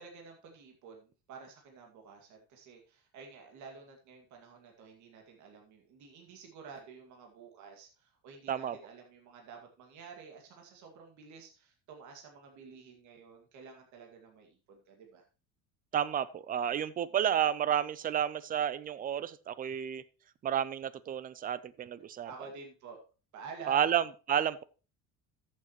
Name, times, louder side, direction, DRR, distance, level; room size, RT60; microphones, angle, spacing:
voice 1, 0.0-15.2 17.1-17.2 22.2-23.0 23.3-23.9, right 5 dB, 55° right, 2 dB, 2.2 m, -50 dB
voice 2, 15.9-20.0 20.4-22.3 23.7-24.6, right 9 dB, 25° right, 17 dB, 0.4 m, -31 dB
13.5 x 7.4 x 3.1 m, 0.34 s
cardioid pair, 150°, 35 cm